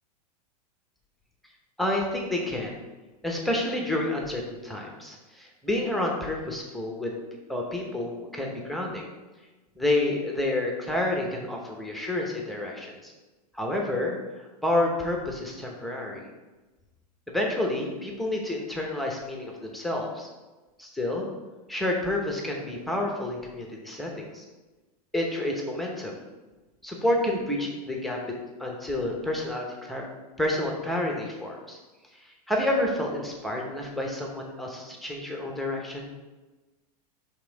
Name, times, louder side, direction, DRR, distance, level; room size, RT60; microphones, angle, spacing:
voice 1, 1.8-2.8 3.2-7.1 7.5-9.1 9.8-13.1 13.5-14.1 14.6-16.2 17.3-20.3 20.8-21.3 21.7-24.4 25.1-26.1 26.8-28.2 28.6-30.1 30.4-31.8 32.5-36.1, left 1 dB, ahead, 0 dB, 0.8 m, -29 dB
5.4 x 3.5 x 5.1 m, 1.2 s
supercardioid pair, 145°, 21 cm